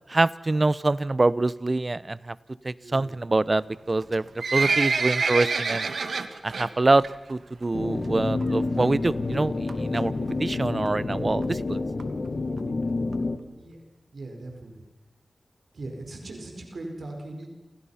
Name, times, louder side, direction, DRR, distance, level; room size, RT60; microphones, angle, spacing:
voice 1, 0.1-2.4 2.6-4.2 4.5-5.9 6.4-10.1 10.4-11.8, right 2 dB, 35° right, 18 dB, 0.8 m, -25 dB
voice 2, 2.7-3.1 4.5-4.8 13.5-13.8 14.1-14.8 15.7-17.5, right 2 dB, 70° right, 2 dB, 4.9 m, -39 dB
Livestock farm animals working animals, 4.0-6.7 7.0-7.3 7.6-7.7 8.4-8.5 8.8-8.9 9.1-9.2 9.7-10.0 10.5-10.6 10.9-11.0 11.1-11.2 11.4-11.5 12.0-12.1 12.6-12.7 13.1-13.2, right 4 dB, 85° right, 1.7 m, -26 dB
sound 1, 7.7-13.4, left 3 dB, 50° left, 2.0 m, -28 dB
28.5 x 28.5 x 5.8 m, 1.1 s
wide cardioid pair, 80°, 0 cm